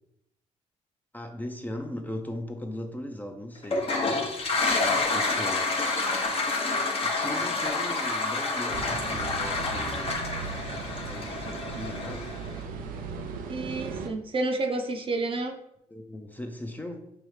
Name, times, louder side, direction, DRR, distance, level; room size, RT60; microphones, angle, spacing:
voice 1, 1.1-3.9 4.6-5.7 7.0-10.1 11.0-12.3 15.9-17.1, left 1 dB, 10° left, 4 dB, 0.5 m, -38 dB
Toilet flush, 3.6-12.5, left 3 dB, 45° left, 0.8 m, -28 dB
sound 1, 8.7-14.1, right 5 dB, 80° right, 0.4 m, -37 dB
voice 2, 13.5-15.6, right 2 dB, 40° right, 4 dB, 0.6 m, -30 dB
5.6 x 2.0 x 3.2 m, 0.80 s
supercardioid pair, 65°, 14 cm